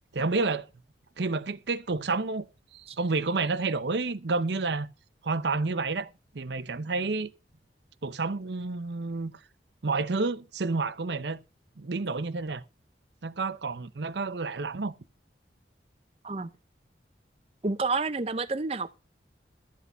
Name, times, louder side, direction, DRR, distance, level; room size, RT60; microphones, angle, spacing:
voice 1, 0.1-0.7 1.2-2.5 2.7-4.9 5.2-6.1 6.3-7.3 8.0-9.3 9.8-11.4 11.8-12.6 13.2-14.9, right 3 dB, 75° right, 0.7 m, -29 dB
voice 2, 17.6-18.9, right 3 dB, 35° right, 0.6 m, -29 dB
12.5 x 8.3 x 5.4 m
head